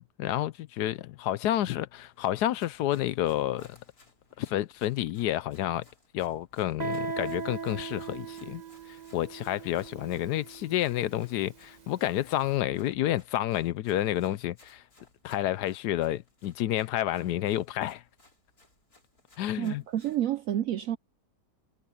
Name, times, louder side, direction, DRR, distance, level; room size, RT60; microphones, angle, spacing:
voice 1, 0.0-3.8 4.4-5.8 6.1-14.8 15.2-18.0 19.4-19.8, left 13 dB, 75° left, 1.1 m, -30 dB
Run, 2.1-20.2, left 2 dB, 55° left, 5.8 m, -62 dB
Guitar, 6.8-12.2, right 5 dB, 25° right, 1.1 m, -39 dB
voice 2, 19.6-21.0, right 11 dB, 75° right, 0.7 m, -29 dB
omnidirectional pair, 1.9 m